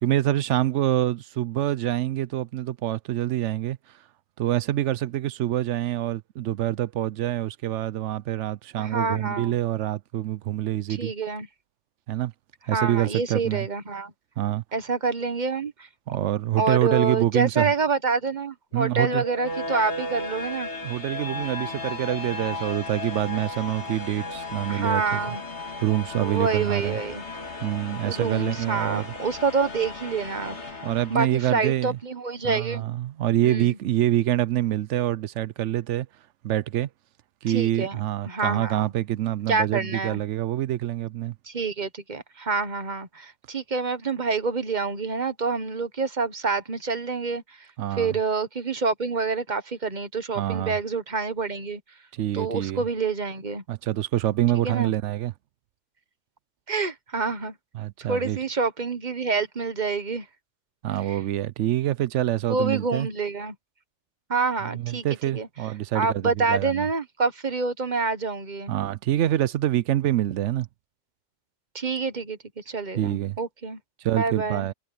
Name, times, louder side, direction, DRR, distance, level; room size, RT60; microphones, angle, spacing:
voice 1, 0.0-3.8 4.4-11.1 12.1-12.3 12.7-13.7 14.4-14.6 16.1-17.7 18.7-19.2 20.8-25.2 25.8-27.0 27.6-29.1 30.8-32.0 32.4-36.1 36.4-36.9 37.4-41.3 47.8-48.2 50.4-50.8 52.1-52.8 53.7-55.3 57.7-58.4 60.8-63.1 64.7-66.9 68.7-70.7 73.0-73.4 74.0-74.7, right 13 dB, 85° right, 0.9 m, -26 dB
voice 2, 8.8-9.6 11.0-11.5 12.7-14.1 14.7-15.9 16.6-20.7 24.7-25.4 26.2-27.2 28.0-30.8 31.1-32.8 33.4-33.7 37.5-38.0 38.3-38.9 39.5-40.2 41.4-47.7 48.0-51.8 52.3-53.6 54.6-54.9 56.7-57.5 58.1-60.3 61.1-61.2 62.5-63.5 64.3-65.0 65.3-65.5 65.9-68.7 71.7-73.8 74.2-74.7, right 4 dB, 40° right, 1.4 m, -27 dB
sound 1, 18.7-31.7, left 2 dB, 70° left, 2.9 m, -35 dB
omnidirectional pair, 1.2 m